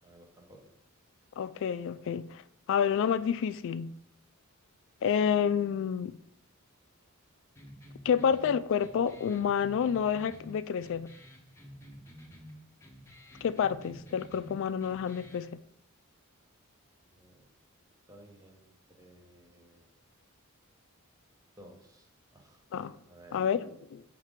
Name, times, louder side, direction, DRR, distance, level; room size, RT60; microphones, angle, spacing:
voice 1, 0.0-0.6 5.0-5.2 17.1-17.5 18.1-19.9 21.6-22.1 22.3-22.6 23.1-23.4, right 1 dB, 15° right, 1.0 m, -56 dB
voice 2, 1.4-2.4 2.7-3.9 5.0-6.2 8.0-11.1 13.4-15.6 22.7-23.0 23.3-24.0, left 7 dB, 60° left, 0.3 m, -29 dB
sound 1, 7.5-15.5, equal, 10° left, 0.9 m, -51 dB
5.8 x 3.6 x 5.1 m
head